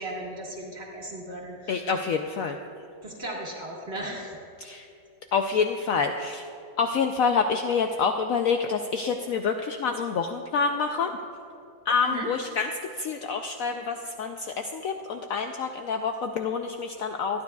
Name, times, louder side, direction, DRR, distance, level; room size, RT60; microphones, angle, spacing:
voice 1, 0.0-1.8 3.0-4.4 12.0-12.3, right 1 dB, 35° right, -3 dB, 2.1 m, -36 dB
voice 2, 1.7-2.6 4.6-4.9 5.3-6.5 6.8-11.1 11.9-17.4, left 5 dB, 85° left, 5 dB, 0.7 m, -27 dB
24.0 x 9.6 x 2.3 m, 2.5 s
omnidirectional pair, 2.0 m